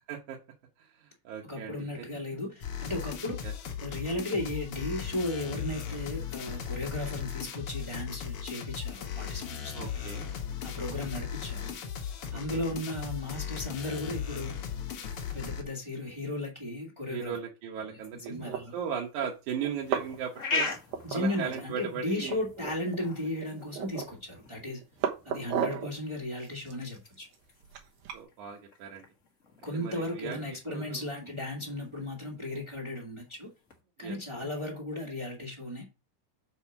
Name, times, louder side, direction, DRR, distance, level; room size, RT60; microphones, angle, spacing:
voice 1, 0.8-2.1 3.4-3.5 9.7-10.3 12.3-12.6 17.1-18.3 18.7-20.7 21.1-22.4 28.1-29.1 29.7-30.4 30.7-31.1 34.0-34.2, right 7 dB, 70° right, 2.4 m, -37 dB
voice 2, 1.4-3.4 3.8-9.9 10.6-11.7 12.3-14.5 15.3-17.3 17.8-18.0 18.3-18.7 21.0-24.8 25.2-27.3 29.6-33.5 34.0-35.9, left 1 dB, 20° right, 0.8 m, -35 dB
sound 1, 2.6-15.6, left 8 dB, 60° left, 1.5 m, -37 dB
sound 2, 18.3-18.6 19.2-19.3 19.6-20.3 20.5-21.6 21.9-22.0 22.2-23.0 23.4-24.2 24.6-25.9 26.4-28.2, right 8 dB, 85° right, 2.9 m, -34 dB
sound 3, 19.7-33.8, left 3 dB, 85° left, 0.7 m, -42 dB
6.2 x 4.7 x 5.9 m
omnidirectional pair, 3.9 m